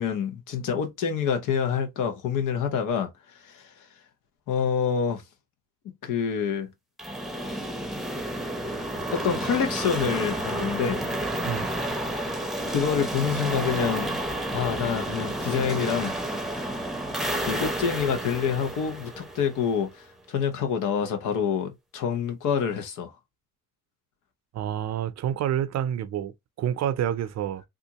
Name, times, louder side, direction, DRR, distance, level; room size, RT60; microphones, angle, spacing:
voice 1, 0.0-3.1 3.4-3.7 4.5-5.2 6.0-6.7 9.1-11.0 12.7-14.2 14.5-16.5 17.5-23.1, left 7 dB, 85° left, 0.9 m, -27 dB
sound 1, 7.0-19.9, right 1 dB, ahead, 0.7 m, -31 dB
voice 2, 24.5-27.6, right 10 dB, 60° right, 0.5 m, -28 dB
3.6 x 2.5 x 2.9 m
cardioid pair, 90°, 30 cm